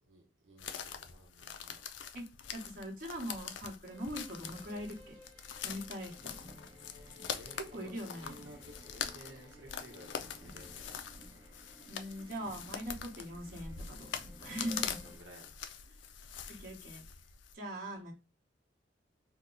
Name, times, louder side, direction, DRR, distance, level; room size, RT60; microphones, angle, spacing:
voice 1, 0.0-1.9 7.3-11.0 14.4-14.8 15.0-15.6, right 1 dB, 85° right, 0 dB, 0.8 m, -55 dB
sound 1, 0.6-17.5, left 8 dB, 75° left, 0.4 m, -44 dB
voice 2, 2.5-5.1 5.6-6.4 7.7-8.4 11.9-14.1 14.4-15.0 15.9-16.0 16.5-17.0 17.5-18.1, equal, 45° right, -2 dB, 1.0 m, -41 dB
sound 2, 3.9-15.2, equal, 20° right, 0.8 m, -56 dB
2.9 x 2.1 x 3.6 m, 0.29 s
head